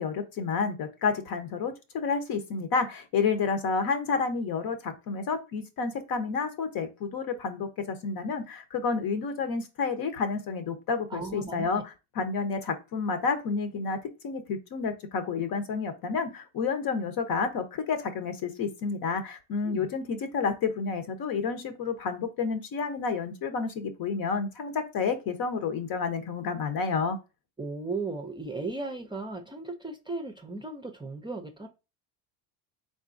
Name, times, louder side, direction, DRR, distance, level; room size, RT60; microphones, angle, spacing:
voice 1, 0.0-11.8 12.1-14.0 14.2-27.2, left 5 dB, 55° left, 1.0 m, -30 dB
voice 2, 11.1-11.7 19.6-19.9 27.6-31.7, right 3 dB, 10° right, 0.5 m, -36 dB
3.9 x 3.7 x 2.6 m
supercardioid pair, 95°, 42 cm